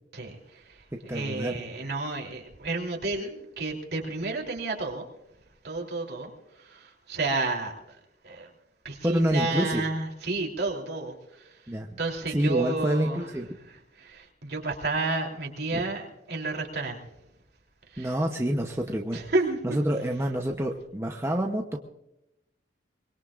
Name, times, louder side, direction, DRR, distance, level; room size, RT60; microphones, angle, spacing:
voice 1, 0.1-5.0 5.6-6.3 6.6-7.8 8.2-8.5 8.8-11.6 12.0-13.2 14.0-17.0 17.9-18.1 19.1-19.6, right 3 dB, 60° right, 0 dB, 3.3 m, -31 dB
voice 2, 1.1-1.6 9.0-9.8 11.7-12.0 12.3-13.5 15.7-15.8 18.0-19.2 19.6-21.8, right 1 dB, 15° right, 2 dB, 0.8 m, -27 dB
24.0 x 21.5 x 2.5 m, 0.89 s
head